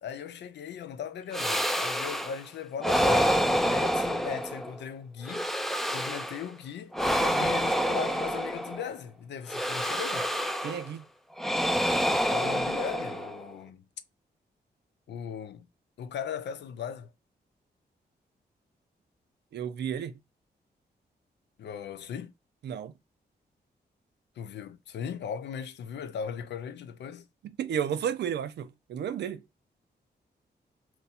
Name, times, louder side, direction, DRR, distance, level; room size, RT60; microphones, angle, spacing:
voice 1, 0.0-5.6 5.9-7.0 7.3-10.3 12.3-13.8 15.1-15.7 16.0-17.1 21.6-22.3 24.4-27.3, left 7 dB, 85° left, 0.5 m, -38 dB
sound 1, 1.3-2.4 2.8-4.8 5.2-6.5 6.9-8.9 9.5-10.9 11.4-13.5, equal, ahead, 0.4 m, -28 dB
voice 2, 7.2-7.5 10.6-11.0 19.5-20.2 22.6-22.9 27.4-29.4, right 8 dB, 80° right, 0.4 m, -33 dB
2.7 x 2.2 x 4.0 m
cardioid pair, 80°, 17 cm